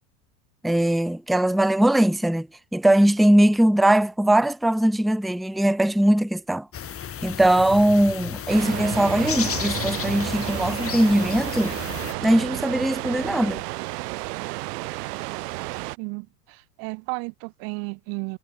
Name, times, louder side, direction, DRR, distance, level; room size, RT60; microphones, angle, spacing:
voice 1, 0.6-2.5 2.7-6.7 7.2-11.8 12.2-13.6, right 1 dB, ahead, 0.8 m, -20 dB
sound 1, 6.7-12.1, left 9 dB, 25° left, 3.0 m, -33 dB
sound 2, 8.5-16.0, right 21 dB, 70° right, 2.4 m, -31 dB
voice 2, 16.0-18.4, right 30 dB, 45° right, 0.8 m, -33 dB
hypercardioid pair, 115°, 50 cm